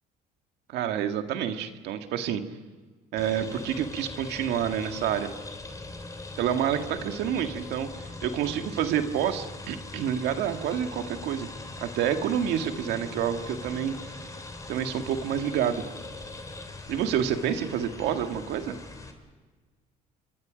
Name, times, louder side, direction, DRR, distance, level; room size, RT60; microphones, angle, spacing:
voice 1, 0.7-2.4 3.1-5.3 6.4-11.5 11.8-13.9 14.7-15.8 16.9-18.7, right 9 dB, 80° right, 6 dB, 1.9 m, -28 dB
sound 1, 3.2-19.1, left 3 dB, 20° left, 3.2 m, -41 dB
27.5 x 23.5 x 5.2 m, 1.4 s
cardioid pair, 110°, 17 cm